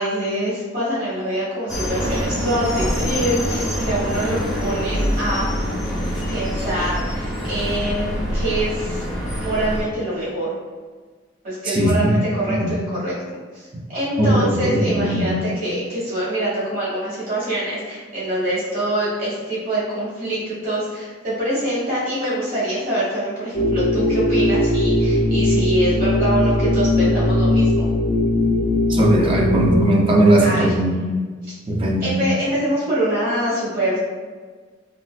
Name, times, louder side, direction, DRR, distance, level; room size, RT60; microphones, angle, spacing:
voice 1, 0.0-5.5 6.3-9.1 9.4-10.5 11.4-13.1 13.5-13.6 13.9-27.9 30.4-30.7 31.4-31.5 32.0-34.0, right 1 dB, 45° right, -9 dB, 1.5 m, -24 dB
sound 1, 1.7-9.8, equal, ahead, 0.8 m, -25 dB
voice 2, 11.6-12.1 12.6-12.7 13.7-13.8 14.2-15.3 28.9-30.9 31.7-32.1, right 1 dB, 30° right, -1 dB, 0.4 m, -18 dB
sound 2, 23.5-29.8, left 1 dB, 40° left, 0.4 m, -19 dB
3.8 x 2.3 x 2.3 m, 1.4 s
head